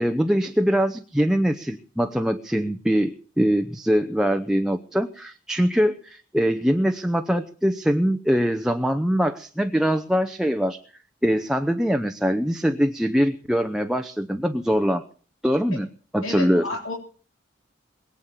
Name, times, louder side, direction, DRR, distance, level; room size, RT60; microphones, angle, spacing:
voice 1, 0.0-10.8 11.2-15.0 15.4-16.7, equal, 5° right, 6 dB, 0.8 m, -23 dB
voice 2, 16.2-16.9, left 2 dB, 85° left, 1 dB, 3.5 m, -31 dB
22.5 x 8.4 x 7.6 m, 0.43 s
head